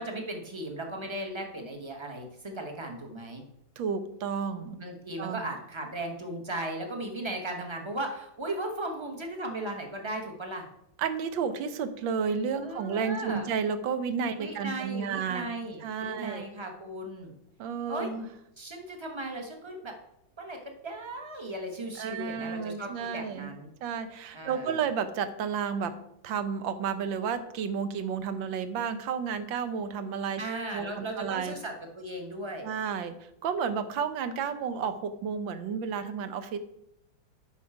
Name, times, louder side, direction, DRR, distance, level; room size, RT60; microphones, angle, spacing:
voice 1, 0.0-3.4 4.8-10.7 12.6-13.5 14.4-17.3 17.9-18.1 18.6-19.9 20.4-23.7 24.3-24.7 30.4-32.7, right 1 dB, 20° right, 3 dB, 0.9 m, -37 dB
voice 2, 3.8-4.8 5.2-5.5 11.0-15.5 15.8-16.5 17.6-18.3 22.0-23.5 23.8-30.4 30.7-31.5 32.6-36.6, right 6 dB, 75° right, 11 dB, 1.5 m, -32 dB
9.7 x 5.7 x 4.8 m, 0.81 s
omnidirectional pair, 2.1 m